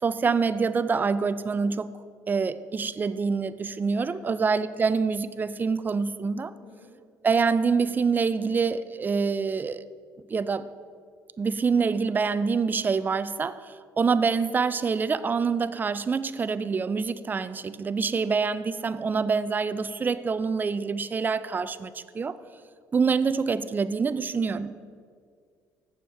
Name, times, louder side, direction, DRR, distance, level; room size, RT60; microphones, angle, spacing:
voice 1, 0.0-1.9 2.3-6.5 7.2-9.8 10.3-10.7 11.4-22.4 22.9-24.8, right 5 dB, 25° right, 0.4 m, -26 dB
voice 2, 4.0-4.9 6.5-6.9 24.3-24.6, left 3 dB, 80° left, 1.5 m, -52 dB
7.3 x 7.0 x 6.4 m
cardioid pair, 95°, 7 cm